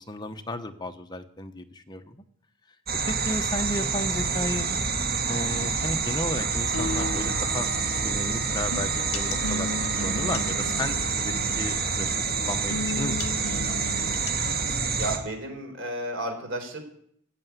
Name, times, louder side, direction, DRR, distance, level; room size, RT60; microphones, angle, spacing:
voice 1, 0.0-2.2 3.0-4.6 5.3-7.7 8.0-13.7, left 1 dB, 20° left, 6 dB, 1.0 m, -34 dB
sound 1, 2.9-15.2, right 5 dB, 45° right, 2.0 m, -27 dB
Wind instrument woodwind instrument, 6.3-11.0, right 2 dB, 85° right, 3.5 m, -43 dB
sound 2, 6.7-14.7, left 3 dB, 85° left, 0.8 m, -36 dB
voice 2, 14.9-16.8, right 1 dB, 60° right, 3 dB, 4.2 m, -32 dB
15.0 x 7.9 x 9.5 m, 0.68 s
head